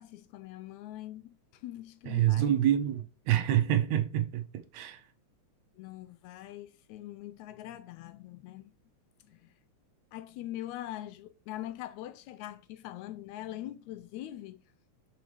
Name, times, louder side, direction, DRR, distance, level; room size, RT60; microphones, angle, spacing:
voice 1, 0.0-2.6 5.7-8.7 9.2-9.5 10.1-14.6, left 14 dB, 80° left, 1.8 m, -43 dB
voice 2, 2.1-5.0, right 11 dB, 75° right, 2.0 m, -27 dB
6.2 x 5.8 x 3.3 m
omnidirectional pair, 3.5 m